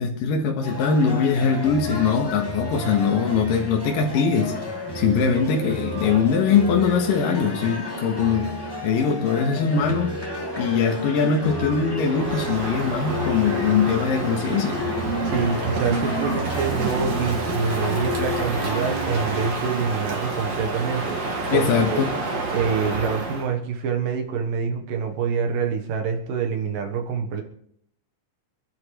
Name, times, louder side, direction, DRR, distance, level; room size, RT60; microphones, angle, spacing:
voice 1, 0.0-4.5 4.9-8.5 8.8-10.2 10.6-14.8 21.5-22.1, left 6 dB, 75° left, 1 dB, 3.1 m, -22 dB
sound 1, 0.6-19.5, equal, 10° left, 1.5 m, -31 dB
Crow, 12.0-23.5, right 3 dB, 50° right, 3.0 m, -29 dB
voice 2, 15.2-22.0 22.5-27.4, right 6 dB, 75° right, 4 dB, 3.0 m, -26 dB
26.0 x 10.5 x 3.3 m, 0.70 s
omnidirectional pair, 4.1 m